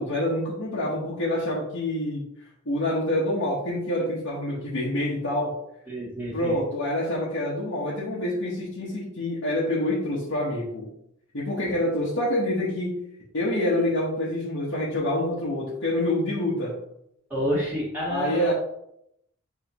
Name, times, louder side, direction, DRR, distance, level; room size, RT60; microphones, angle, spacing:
voice 1, 0.0-2.2 2.6-5.6 6.3-10.9 11.3-13.0 13.3-16.8 18.1-18.5, left 1 dB, 60° left, -6 dB, 1.3 m, -26 dB
voice 2, 5.9-6.6 17.3-18.5, equal, 10° right, -9 dB, 1.6 m, -29 dB
7.3 x 4.3 x 3.0 m, 0.77 s
head